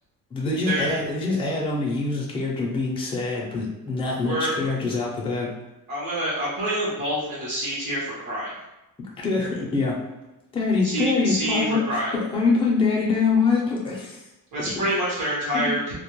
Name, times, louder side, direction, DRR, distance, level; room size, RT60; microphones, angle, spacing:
voice 1, 0.3-5.5 9.2-10.0 10.5-14.2 14.8-14.9 15.5-15.8, left 4 dB, 15° left, -3 dB, 0.4 m, -24 dB
voice 2, 4.2-4.5 5.9-8.5 10.8-12.1 14.5-15.9, right 1 dB, 65° right, -7 dB, 0.8 m, -27 dB
2.2 x 2.1 x 2.9 m, 0.96 s
cardioid pair, 165°, 34 cm